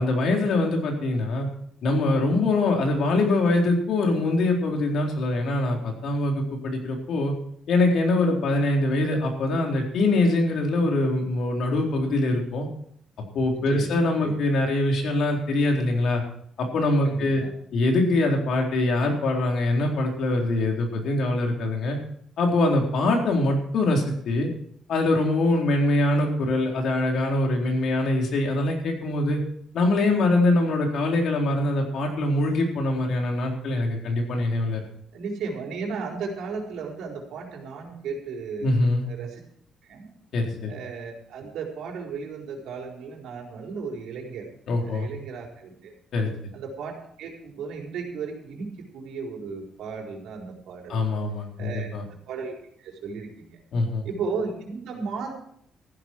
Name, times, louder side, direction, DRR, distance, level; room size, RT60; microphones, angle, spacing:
voice 1, 0.0-1.5 1.8-7.3 7.7-12.7 13.3-16.2 16.6-17.4 17.7-22.0 22.4-24.5 24.9-29.4 29.7-34.8 38.6-39.0 40.3-40.7 44.7-45.1 46.1-46.3 50.9-52.0 53.7-54.0, left 2 dB, 60° left, 1 dB, 4.0 m, -23 dB
voice 2, 13.5-14.4 17.0-17.5 35.1-38.7 39.0-39.4 39.8-40.1 40.7-44.5 44.8-45.9 46.5-46.9 47.2-51.0 51.6-51.9 52.3-53.6 54.0-55.3, right 5 dB, 80° right, 0 dB, 4.3 m, -35 dB
15.0 x 12.0 x 4.6 m, 0.66 s
cardioid pair, 150°, 0 cm